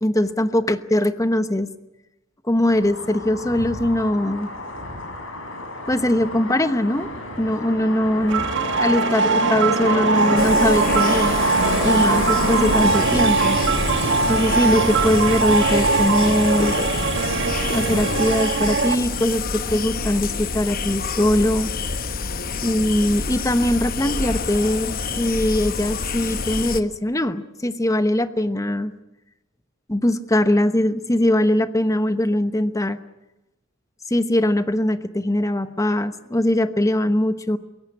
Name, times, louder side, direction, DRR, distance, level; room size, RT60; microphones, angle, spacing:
voice 1, 0.0-1.7 2.5-4.5 5.9-7.1 7.4-8.4 8.8-11.4 11.8-13.6 14.3-16.7 17.7-21.7 22.6-28.9 29.9-33.0 34.1-37.6, left 1 dB, 15° left, 11 dB, 1.0 m, -21 dB
sound 1, 2.7-18.3, left 1 dB, 75° left, 5.6 m, -28 dB
sound 2, 8.3-19.0, right 4 dB, 60° right, 1.2 m, -21 dB
sound 3, 10.4-26.8, left 4 dB, 45° left, 1.1 m, -28 dB
22.5 x 18.0 x 9.8 m, 0.99 s
head